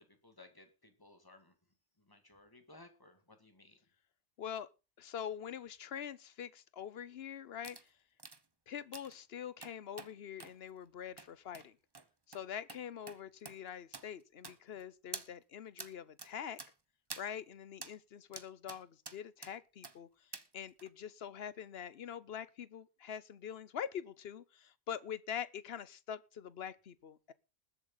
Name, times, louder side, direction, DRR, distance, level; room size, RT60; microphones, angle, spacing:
voice 1, 0.1-1.5 2.0-3.8, left 2 dB, 20° left, 2.2 m, -59 dB
voice 2, 4.4-4.7 5.0-7.9 8.7-11.8 12.3-16.6 17.2-27.3, left 8 dB, 70° left, 1.1 m, -44 dB
sound 1, 7.6-7.8 8.2-8.4 8.9-9.2 9.6-10.1 10.4-10.5 11.2-11.3 11.5-11.7 11.9-12.1 12.3-12.4 12.7-12.8 13.1-13.2 13.5-13.6 13.9-14.1 14.4-14.8 15.1-15.3 15.8-15.9 16.2-16.3 16.6-16.7 17.1-17.3 17.8-17.9 18.3-18.8 19.1-19.5 19.8-20.0 20.3-20.5 20.8-20.9, right 3 dB, 25° right, 0.9 m, -47 dB
20.5 x 7.9 x 3.9 m
omnidirectional pair, 1.1 m